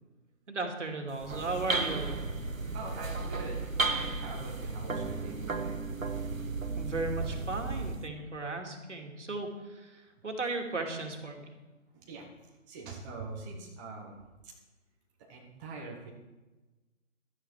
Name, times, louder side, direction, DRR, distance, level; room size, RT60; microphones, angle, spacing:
voice 1, 0.5-2.3 6.8-11.5, right 3 dB, 65° right, 3 dB, 2.4 m, -36 dB
sound 1, 1.1-8.1, right 3 dB, 90° right, 1.2 m, -34 dB
voice 2, 2.7-5.8 11.9-12.2 12.7-14.2 15.3-16.1, right 3 dB, 15° right, -2 dB, 1.2 m, -43 dB
13.0 x 9.0 x 4.7 m, 1.2 s
figure-of-eight pair, 145°, 39 cm